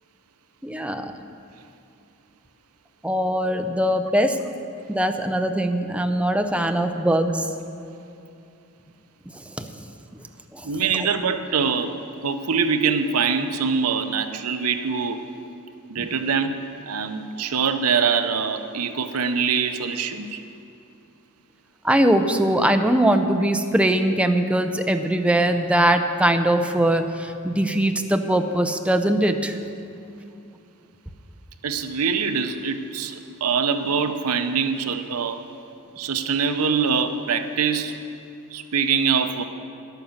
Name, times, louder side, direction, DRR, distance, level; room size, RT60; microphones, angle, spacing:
voice 1, 0.6-1.2 3.0-4.4 4.9-7.5 9.3-9.9 10.5-11.1 16.0-16.1 21.8-29.6, right 1 dB, 5° right, 6 dB, 0.6 m, -21 dB
voice 2, 10.6-11.9 12.2-15.2 15.9-20.4 31.6-35.4 36.0-38.0 38.5-39.4, right 6 dB, 75° right, 8 dB, 0.7 m, -24 dB
10.5 x 9.1 x 7.2 m, 2.6 s
head